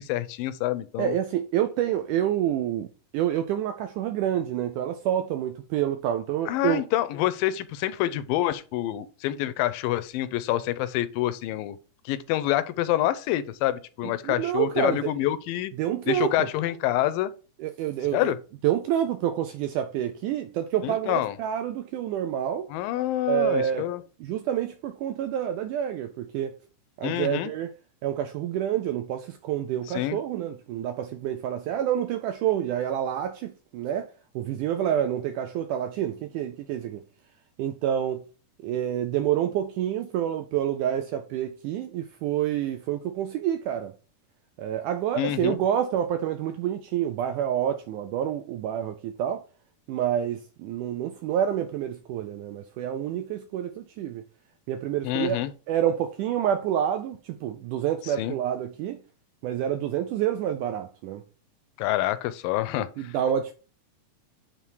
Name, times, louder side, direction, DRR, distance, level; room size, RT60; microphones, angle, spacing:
voice 1, 0.0-1.1 6.5-11.8 12.1-15.7 16.1-17.3 18.1-18.4 20.8-21.4 22.7-24.0 27.0-27.5 29.9-30.2 45.2-45.6 55.0-55.5 58.2-58.4 61.8-63.2, left 14 dB, 80° left, 2.2 m, -27 dB
voice 2, 1.0-2.9 3.1-6.8 14.2-15.1 15.8-16.5 17.6-18.3 18.6-22.7 23.3-23.9 24.2-26.6 27.0-27.7 28.0-34.1 34.4-37.0 37.6-38.2 38.6-43.9 44.6-49.4 49.9-54.2 54.7-55.4 55.7-59.0 59.4-61.2 63.0-63.5, right 10 dB, 80° right, 1.8 m, -28 dB
9.0 x 3.5 x 4.6 m
omnidirectional pair, 4.2 m